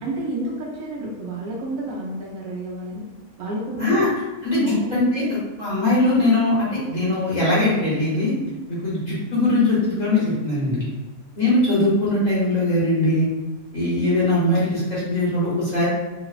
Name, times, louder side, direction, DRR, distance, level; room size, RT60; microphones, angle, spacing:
voice 1, 0.0-3.0 3.4-4.0 4.6-4.9, right 2 dB, 70° right, -5 dB, 1.0 m, -30 dB
voice 2, 3.8-4.1 4.4-8.3 8.7-10.8 11.4-13.3 13.7-15.9, left 2 dB, 35° left, -9 dB, 0.9 m, -21 dB
3.1 x 2.0 x 2.4 m, 1.2 s
omnidirectional pair, 1.5 m